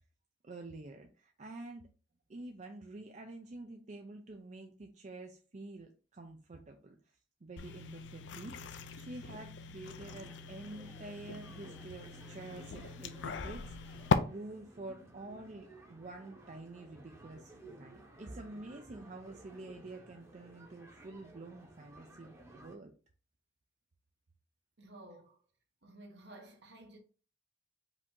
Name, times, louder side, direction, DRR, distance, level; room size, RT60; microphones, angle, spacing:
voice 1, 0.4-1.9 2.3-22.9, right 2 dB, 40° right, 0.5 m, -48 dB
sound 1, 7.6-14.2, left 5 dB, 75° left, 0.5 m, -38 dB
sound 2, 9.9-22.8, right 1 dB, 15° right, 0.9 m, -56 dB
voice 2, 24.8-25.4 25.8-27.0, right 1 dB, 65° right, 1.1 m, -53 dB
5.0 x 2.8 x 3.6 m
head